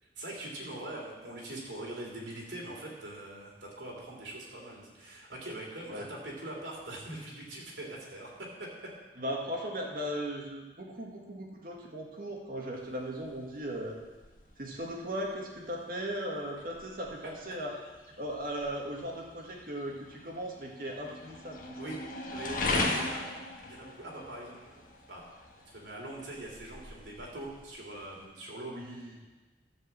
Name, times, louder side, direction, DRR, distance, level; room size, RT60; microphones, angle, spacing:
voice 1, 0.0-8.9 21.8-22.0 22.3-23.3 23.7-25.3 25.7-29.0, right 1 dB, 85° right, -2 dB, 3.4 m, -43 dB
voice 2, 9.2-14.0 14.6-17.7 18.2-21.9 28.7-29.1, equal, 50° right, -1 dB, 2.0 m, -37 dB
sound 1, 12.7-28.3, left 2 dB, 50° left, 1.4 m, -39 dB
13.0 x 5.4 x 7.5 m, 1.2 s
head